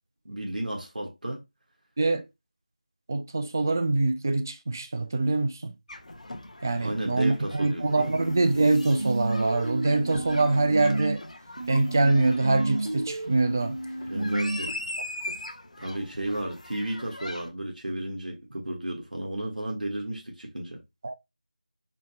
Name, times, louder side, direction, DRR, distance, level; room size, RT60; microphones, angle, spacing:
voice 1, 0.2-1.4 6.8-8.1 14.1-14.7 15.8-20.8, right 1 dB, 80° right, 1.3 m, -33 dB
voice 2, 3.1-5.7 6.6-11.2 11.7-13.8 21.0-21.1, right 2 dB, 25° right, 0.3 m, -24 dB
sound 1, 5.9-17.5, left 1 dB, 55° left, 0.7 m, -41 dB
sound 2, 8.1-11.2 11.6-14.6, right 2 dB, 45° right, 0.9 m, -32 dB
4.2 x 2.1 x 4.0 m
figure-of-eight pair, 170°, 4 cm